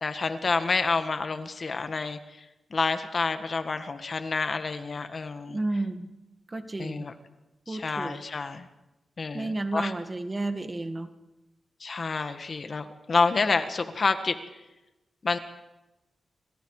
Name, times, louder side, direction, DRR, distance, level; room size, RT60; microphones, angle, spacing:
voice 1, 0.0-2.4 2.7-5.6 6.8-7.1 7.7-8.7 9.2-9.9 11.8-14.4 15.2-15.4, left 4 dB, 45° left, 9 dB, 1.6 m, -28 dB
voice 2, 5.5-6.1 6.5-7.1 7.7-8.2 9.3-11.1, right 2 dB, 25° right, 8 dB, 1.8 m, -31 dB
27.0 x 26.5 x 4.9 m, 1.0 s
wide cardioid pair, 110°, 0 cm